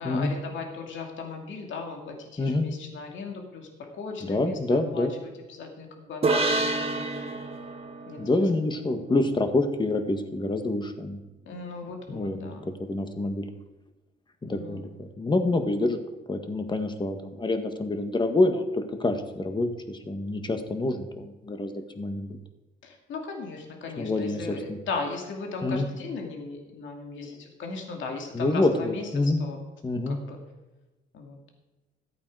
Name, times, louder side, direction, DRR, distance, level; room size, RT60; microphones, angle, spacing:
voice 1, 0.0-7.4 8.1-8.5 11.5-12.7 14.4-14.8 15.5-15.6 22.8-29.6 30.1-30.4 31.1-31.4, left 4 dB, 70° left, 2 dB, 2.4 m, -37 dB
voice 2, 4.2-5.1 8.2-11.2 12.1-13.4 14.5-16.0 16.3-22.4 24.0-24.4 25.6-25.9 28.3-29.4 29.8-30.2, left 2 dB, 25° left, 6 dB, 1.6 m, -27 dB
sound 1, 6.2-9.7, right 2 dB, 30° right, 1.8 m, -29 dB
14.5 x 8.5 x 4.8 m, 1.1 s
cardioid pair, 90°, 20 cm